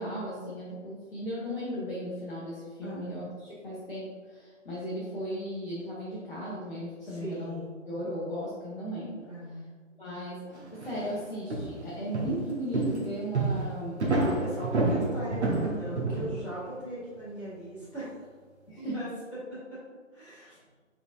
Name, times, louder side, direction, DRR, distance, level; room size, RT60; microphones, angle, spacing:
voice 1, 0.0-7.6 7.9-9.3 10.0-14.1 18.7-19.1 20.5-20.6, equal, 45° left, -7 dB, 1.2 m, -36 dB
voice 2, 2.8-3.2 7.0-7.7 9.2-9.8 14.2-18.1 18.8-19.1 19.5-19.8 20.1-20.6, right 1 dB, 5° left, -17 dB, 1.0 m, -39 dB
sound 1, 10.5-11.2 11.5-16.6, right 2 dB, 60° right, 1.0 m, -29 dB
5.1 x 3.9 x 2.5 m, 1.5 s
figure-of-eight pair, 150°, 39 cm